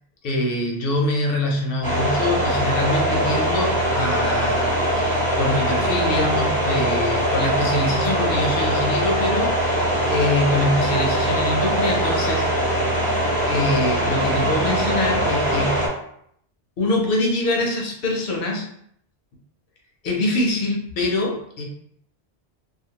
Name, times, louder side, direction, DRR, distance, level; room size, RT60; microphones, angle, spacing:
voice 1, 0.2-4.7 5.0-9.6 10.1-12.4 13.5-15.9 16.8-18.7 20.0-21.6, left 1 dB, 60° left, 0 dB, 0.8 m, -24 dB
sound 1, 1.8-15.9, equal, 10° left, 0.7 m, -22 dB
2.4 x 2.4 x 2.8 m, 0.69 s
omnidirectional pair, 1.1 m